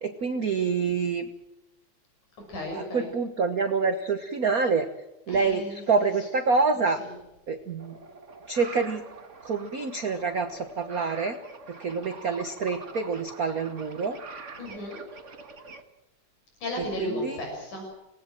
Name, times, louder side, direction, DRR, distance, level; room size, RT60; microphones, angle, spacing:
voice 1, 0.0-1.3 2.7-4.9 5.3-7.0 7.5-7.9 8.5-9.0 9.4-11.4 11.7-14.2 17.1-17.4, right 4 dB, 50° right, 7 dB, 1.1 m, -27 dB
voice 2, 2.5-3.1 5.3-5.8 7.0-7.1 14.6-15.0 16.6-17.8, equal, 90° left, 1 dB, 7.8 m, -34 dB
sound 1, 7.8-15.8, right 4 dB, 35° right, 1.4 m, -44 dB
27.0 x 18.5 x 7.7 m, 0.97 s
omnidirectional pair, 3.4 m